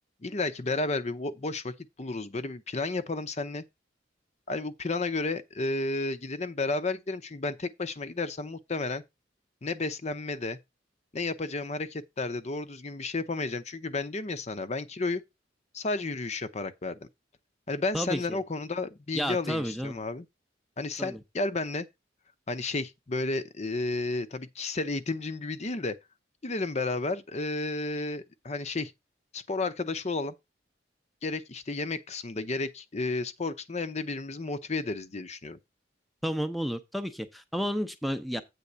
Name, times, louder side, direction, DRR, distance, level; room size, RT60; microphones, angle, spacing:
voice 1, 0.2-1.7 2.0-3.6 4.5-9.0 9.6-10.6 11.1-15.2 15.7-17.0 17.7-20.3 20.8-21.9 22.5-25.9 26.4-28.9 29.3-30.3 31.2-35.6, left 3 dB, 35° left, 0.7 m, -32 dB
voice 2, 17.9-18.4 19.2-20.0 21.0-21.2 36.2-38.4, equal, ahead, 0.7 m, -31 dB
8.5 x 3.6 x 6.7 m
head